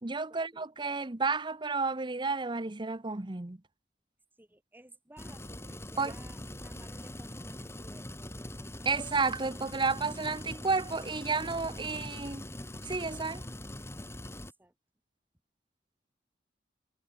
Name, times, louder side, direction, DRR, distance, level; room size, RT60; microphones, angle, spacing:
voice 1, 0.0-3.6 6.0-6.1 8.8-12.4 12.8-13.4, right 4 dB, 25° right, 0.9 m, -31 dB
voice 2, 4.4-8.7 14.4-14.7, right 1 dB, 10° right, 2.0 m, -56 dB
sound 1, 5.2-14.5, left 1 dB, 15° left, 3.3 m, -43 dB
head